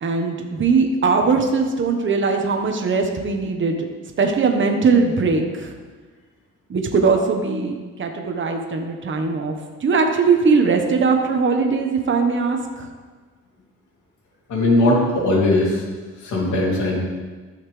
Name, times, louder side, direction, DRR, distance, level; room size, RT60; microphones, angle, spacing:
voice 1, 0.0-3.8 4.2-5.7 6.7-9.5 9.8-12.9, right 4 dB, 40° right, 3 dB, 1.3 m, -20 dB
voice 2, 14.5-15.8 16.2-17.0, left 1 dB, 75° left, -4 dB, 2.9 m, -19 dB
14.0 x 5.7 x 3.3 m, 1.4 s
cardioid pair, 90°, 30 cm